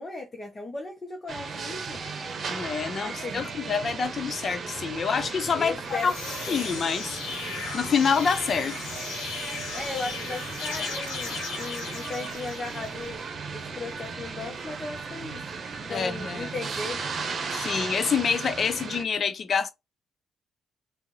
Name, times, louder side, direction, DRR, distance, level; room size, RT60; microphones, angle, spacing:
voice 1, 0.0-2.0 3.0-3.4 5.5-6.1 6.5-6.6 9.7-13.2 13.5-15.4 15.8-17.0, left 3 dB, 25° left, 1.0 m, -36 dB
sound 1, 1.3-19.0, right 5 dB, 50° right, 1.0 m, -36 dB
voice 2, 2.5-6.1 6.5-7.1 7.7-8.8 15.9-16.5 17.5-19.7, left 6 dB, 50° left, 0.5 m, -27 dB
sound 2, 5.7-13.2, left 5 dB, 85° left, 1.1 m, -37 dB
3.6 x 2.5 x 3.1 m
cardioid pair, 90°, 0 cm